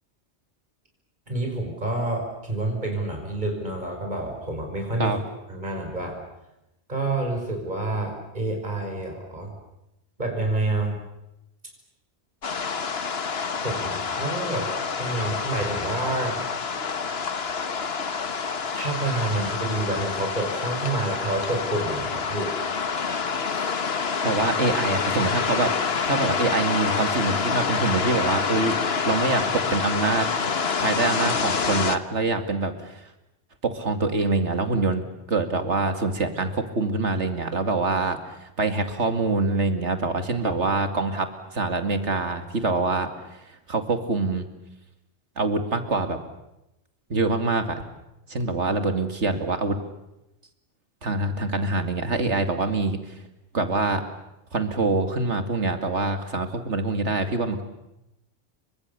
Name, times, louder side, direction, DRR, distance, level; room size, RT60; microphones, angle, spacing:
voice 1, 1.3-5.2 5.5-6.2 6.9-9.5 10.2-11.0 13.6-14.7 15.0-16.4 18.7-22.6 23.5-23.7, right 2 dB, 40° right, 2 dB, 5.6 m, -28 dB
sound 1, 12.4-32.0, left 5 dB, 65° left, 1.5 m, -27 dB
voice 2, 24.2-28.8 29.0-30.3 30.8-33.1 33.6-44.5 45.4-46.2 47.1-47.8 48.3-49.8 51.0-53.2 53.5-54.0 54.5-57.6, right 3 dB, 85° right, 8 dB, 2.7 m, -25 dB
30.0 x 24.5 x 6.9 m, 0.89 s
omnidirectional pair, 1.2 m